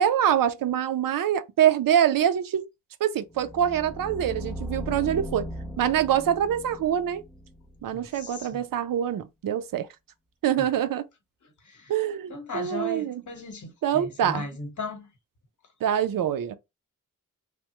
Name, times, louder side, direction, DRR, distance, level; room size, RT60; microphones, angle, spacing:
voice 1, 0.0-2.7 3.0-5.5 5.8-7.2 7.8-9.9 10.4-11.0 11.9-13.2 13.8-14.5 15.8-16.6, right 10 dB, 75° right, 0.5 m, -25 dB
sound 1, 3.3-8.3, equal, ahead, 0.5 m, -38 dB
voice 2, 7.9-8.6 11.7-11.9 12.3-15.1, left 3 dB, 60° left, 1.1 m, -37 dB
3.3 x 2.0 x 2.9 m
wide cardioid pair, 115°, 34 cm